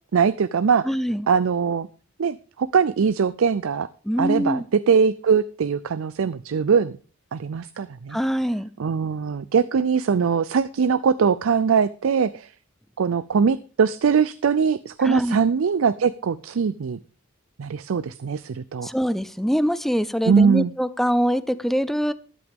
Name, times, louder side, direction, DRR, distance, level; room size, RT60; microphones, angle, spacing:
voice 1, 0.1-0.8 1.3-1.9 2.2-3.9 4.2-7.0 7.3-8.2 8.8-12.5 13.0-17.0 17.6-18.9 20.2-20.7, right 6 dB, 75° right, 16 dB, 0.4 m, -21 dB
voice 2, 0.8-1.3 4.1-4.6 8.1-8.7 15.0-15.4 18.8-22.1, equal, ahead, 15 dB, 0.5 m, -23 dB
13.0 x 11.0 x 3.6 m, 0.36 s
head